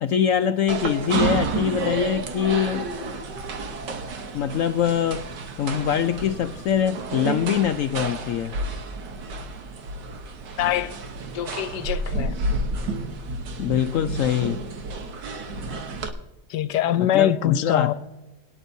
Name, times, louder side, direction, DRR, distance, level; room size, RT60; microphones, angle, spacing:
voice 1, 0.0-3.0 4.3-5.3 5.6-8.6 13.6-14.6 16.9-17.9, left 9 dB, 70° left, 0.8 m, -23 dB
sound 1, 0.7-16.1, right 3 dB, 85° right, 1.7 m, -30 dB
voice 2, 10.6-10.9 11.3-12.3 16.5-17.9, left 11 dB, 90° left, 1.3 m, -23 dB
21.5 x 10.0 x 2.7 m
omnidirectional pair, 1.8 m